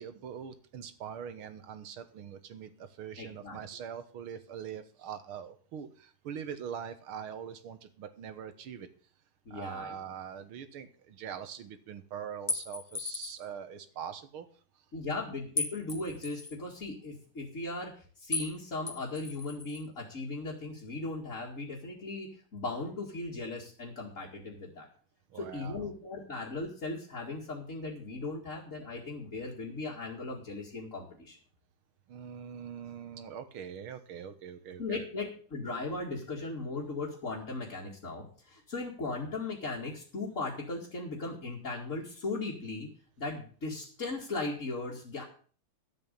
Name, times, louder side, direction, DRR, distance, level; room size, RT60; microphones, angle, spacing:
voice 1, 0.0-8.9 9.5-14.5 25.3-25.9 32.1-35.3, right 8 dB, 80° right, 10 dB, 2.0 m, -43 dB
voice 2, 3.2-3.6 9.5-9.9 14.9-24.9 25.3-31.4 34.8-42.9 43.2-45.2, left 3 dB, 35° left, -4 dB, 2.5 m, -38 dB
sound 1, 12.5-13.5 15.6-16.6 18.3-18.6 18.9-19.8, left 3 dB, 20° left, 1.3 m, -36 dB
12.5 x 7.9 x 6.9 m, 0.43 s
omnidirectional pair, 2.3 m